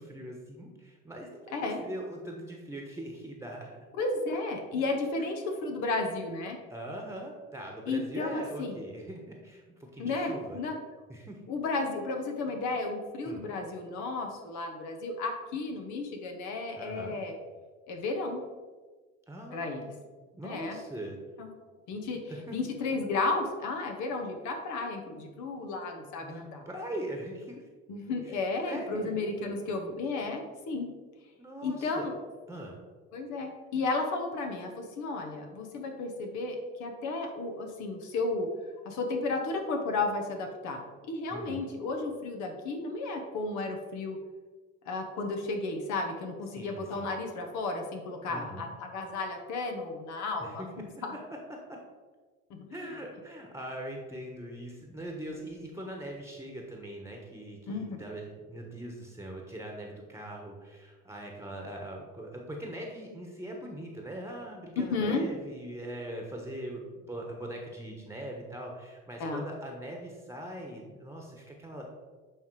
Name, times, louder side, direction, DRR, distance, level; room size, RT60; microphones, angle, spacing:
voice 1, 0.0-3.8 5.2-5.3 6.7-10.6 11.1-11.4 12.7-12.9 13.2-13.4 16.8-17.2 19.3-19.8 20.3-21.2 22.3-22.6 26.2-27.7 28.2-29.1 31.4-32.1 32.5-32.8 41.3-41.6 46.5-47.2 48.2-48.7 50.4-50.7 51.1-51.8 52.7-71.9, right 1 dB, 10° right, 1 dB, 1.2 m, -41 dB
voice 2, 4.0-6.6 7.9-8.8 10.0-10.8 11.5-17.3 17.9-18.4 19.5-19.9 20.4-20.8 21.4-21.5 21.9-22.2 22.5-26.6 27.9-30.9 31.6-32.1 33.1-38.5 38.8-44.2 44.8-50.6 51.0-51.1 52.5-52.9 57.7-58.0 64.9-65.2 69.2-69.4, left 3 dB, 70° left, 4 dB, 1.1 m, -33 dB
8.8 x 3.4 x 4.7 m, 1.4 s
supercardioid pair, 85°, 30 cm